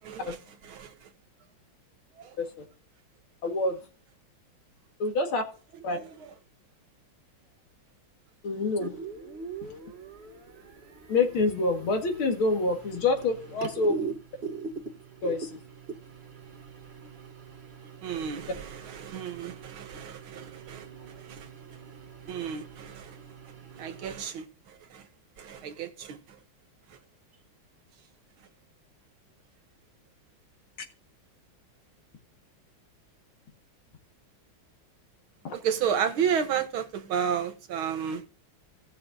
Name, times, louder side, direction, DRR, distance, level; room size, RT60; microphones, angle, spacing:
voice 1, 0.0-1.1 2.2-2.4 5.9-6.4 18.0-20.9 21.2-21.5 22.3-23.2 23.8-25.1 25.4-26.4 26.9-27.0 35.5-38.2, right 8 dB, 80° right, 2.0 m, -32 dB
voice 2, 3.4-3.8 5.0-5.4 5.8-6.0 8.4-8.9 11.1-14.0 15.2-15.6 35.4-35.5, left 3 dB, 85° left, 2.7 m, -27 dB
sound 1, 8.8-24.2, right 5 dB, 35° right, 1.2 m, -42 dB
18.0 x 6.5 x 2.7 m
omnidirectional pair, 2.3 m